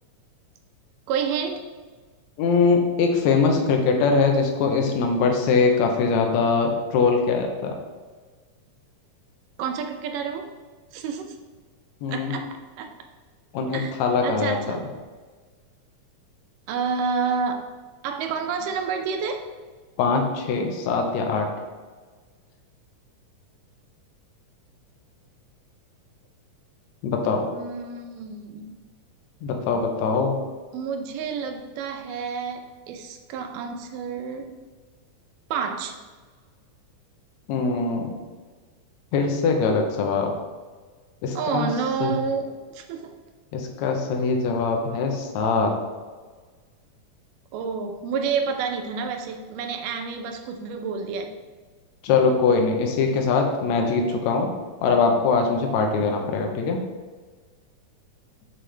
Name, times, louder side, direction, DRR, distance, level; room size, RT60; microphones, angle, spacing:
voice 1, 1.1-1.6 9.6-10.5 10.9-11.4 12.1-12.5 12.8-12.9 13.7-14.0 14.2-14.8 16.7-17.7 18.0-19.4 27.5-28.7 30.7-34.5 35.5-36.0 41.4-43.1 47.5-51.4, right 5 dB, 80° right, 5 dB, 2.3 m, -29 dB
voice 2, 2.4-7.8 12.0-12.4 13.5-14.8 20.0-21.5 27.0-27.4 29.4-30.4 37.5-38.2 39.1-40.3 41.2-41.7 42.0-42.1 43.5-45.7 52.0-54.5 54.8-56.8, left 4 dB, 70° left, 3 dB, 1.9 m, -22 dB
6.3 x 6.2 x 3.3 m, 1.4 s
omnidirectional pair, 3.8 m